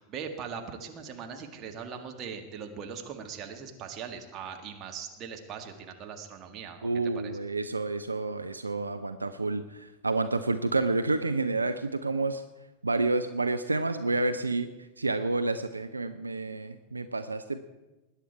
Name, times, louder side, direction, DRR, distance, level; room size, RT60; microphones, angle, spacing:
voice 1, 0.0-6.9 7.2-7.3, right 6 dB, 30° right, 4 dB, 1.9 m, -40 dB
voice 2, 6.8-12.4 12.8-14.7 15.0-17.6, right 3 dB, 80° right, 9 dB, 0.6 m, -29 dB
21.0 x 10.0 x 4.6 m, 1.1 s
figure-of-eight pair, 90°, 0 cm